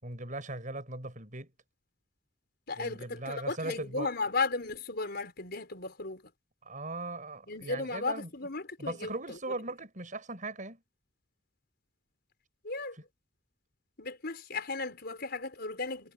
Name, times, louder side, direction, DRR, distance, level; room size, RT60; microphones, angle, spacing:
voice 1, 0.0-1.5 2.8-4.1 6.6-8.3 8.8-10.8, right 2 dB, 40° right, 6.6 m, -39 dB
voice 2, 2.7-6.2 7.5-9.6 12.6-13.0 14.0-16.1, left 3 dB, 55° left, 5.2 m, -35 dB
head